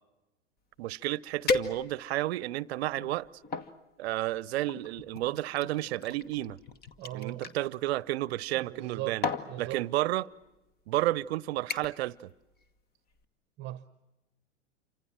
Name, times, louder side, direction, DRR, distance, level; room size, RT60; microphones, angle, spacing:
sound 1, 0.8-0.9 1.5-2.2 2.9-3.7 4.7-7.6 8.7-8.9 9.2-9.5 10.4-10.6 11.0-11.3 11.7-12.1 12.4-12.8 13.1-13.2, left 4 dB, 25° left, 1.5 m, -35 dB
voice 1, 0.8-3.3 4.0-6.6 7.1-9.3 9.6-10.3 10.9-12.3, right 16 dB, 55° right, 0.8 m, -31 dB
voice 2, 7.0-7.5 8.5-9.8 13.6-13.9, right 15 dB, 30° right, 1.0 m, -39 dB
28.5 x 25.5 x 7.5 m
hypercardioid pair, 105°, 37 cm